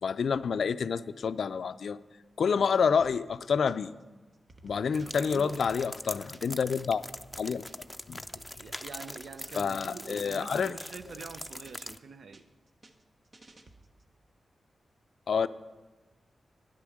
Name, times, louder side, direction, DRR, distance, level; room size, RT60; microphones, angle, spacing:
voice 1, 0.0-2.0 2.4-3.9 4.6-7.0 7.4-7.6 8.1-8.2 9.5-10.7 15.3-15.5, left 6 dB, 75° left, 14 dB, 0.4 m, -28 dB
sound 1, 3.0-4.0 4.3-6.7 7.0-9.4 9.7-10.0 10.3-12.0 12.3-14.1, right 2 dB, 55° right, 1.0 m, -58 dB
voice 2, 4.7-5.6 8.3-12.4, right 5 dB, 75° right, 11 dB, 0.6 m, -45 dB
sound 2, 4.9-12.0, left 1 dB, 15° left, 0.5 m, -43 dB
10.0 x 8.5 x 6.3 m, 1.2 s
cardioid pair, 45°, 0 cm